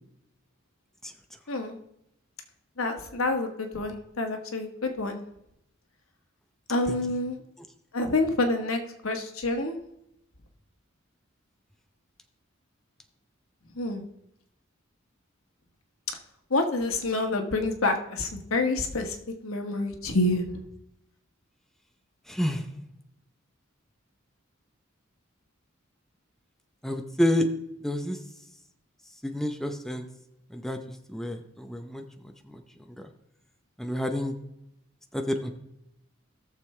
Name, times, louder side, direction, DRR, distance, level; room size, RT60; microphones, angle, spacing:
voice 1, 1.5-1.8 2.8-5.2 6.7-7.4 7.9-9.8 13.8-14.0 16.5-19.2 19.4-20.6, left 2 dB, 85° left, 4 dB, 1.4 m, -28 dB
voice 2, 22.3-22.6 26.8-27.5 27.8-28.2 29.2-30.1 30.5-30.8 31.1-32.0 32.5-32.6 33.8-34.3 35.1-35.5, left 1 dB, ahead, 4 dB, 0.7 m, -28 dB
18.0 x 6.8 x 3.3 m, 0.83 s
head